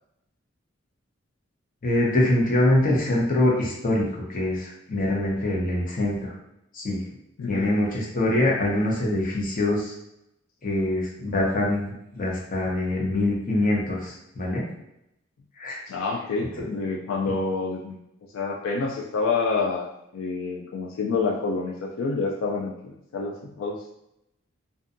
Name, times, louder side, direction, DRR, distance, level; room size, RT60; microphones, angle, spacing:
voice 1, 1.8-4.0 4.3-6.2 6.7-7.0 7.5-9.9 10.6-14.6 15.6-15.8, left 1 dB, 45° left, -3 dB, 0.7 m, -24 dB
voice 2, 15.9-18.0 18.3-19.9 20.1-23.8, left 4 dB, 80° left, -1 dB, 0.3 m, -28 dB
2.6 x 2.2 x 2.5 m, 0.82 s
head